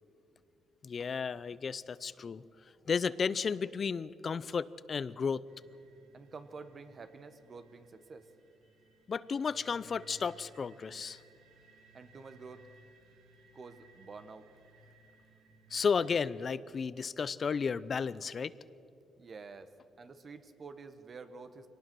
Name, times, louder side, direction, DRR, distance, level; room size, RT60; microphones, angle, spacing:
voice 1, 0.8-2.4 2.9-5.4 9.1-11.2 15.7-18.5, left 5 dB, 45° left, 18 dB, 0.5 m, -33 dB
sound 1, 5.5-16.2, right 3 dB, 80° right, 1.9 m, -62 dB
voice 2, 6.1-8.3 11.9-12.6 13.5-14.5 19.2-19.7 20.0-21.7, right 4 dB, 40° right, 9 dB, 1.3 m, -49 dB
23.5 x 18.5 x 6.2 m, 2.7 s
cardioid pair, 90°, 0 cm